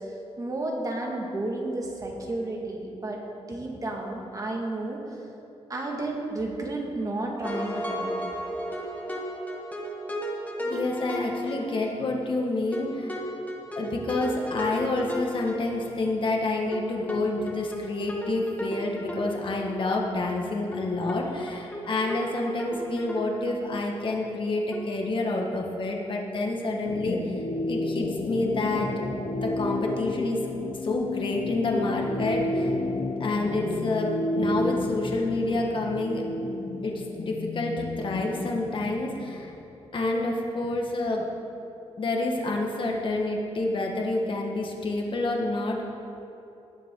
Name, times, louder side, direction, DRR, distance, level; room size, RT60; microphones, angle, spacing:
voice 1, 0.1-5.2 5.7-8.2, right 2 dB, 35° right, -1 dB, 2.0 m, -32 dB
sound 1, 7.4-12.3 12.7-16.3 16.7-19.9 20.2-20.3 20.7-20.8 21.1-21.2 21.5-23.9 24.2-24.3 24.7-24.8, equal, 15° left, 1.9 m, -34 dB
voice 2, 10.6-13.2 13.8-27.2 27.7-29.1 29.4-30.4 30.8-32.7 33.2-36.3 36.8-39.5 39.9-41.3 42.0-45.8, left 2 dB, 50° left, 0 dB, 1.8 m, -28 dB
sound 2, 26.8-39.5, left 2 dB, 80° left, 1.1 m, -31 dB
19.0 x 7.3 x 3.9 m, 2.9 s
cardioid pair, 110°, 11 cm